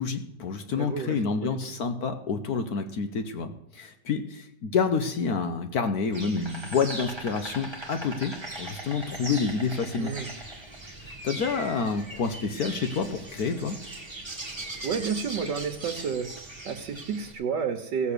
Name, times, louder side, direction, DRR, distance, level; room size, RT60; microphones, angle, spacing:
voice 1, 0.0-10.1 11.0-13.8, left 5 dB, 65° left, 8 dB, 1.4 m, -28 dB
voice 2, 0.7-1.8 10.0-10.3 14.8-16.3 16.6-18.1, right 6 dB, 85° right, 3 dB, 1.7 m, -31 dB
Insect, 6.1-17.3, right 2 dB, 15° right, 1.8 m, -39 dB
17.0 x 6.9 x 6.7 m, 0.88 s
omnidirectional pair, 1.9 m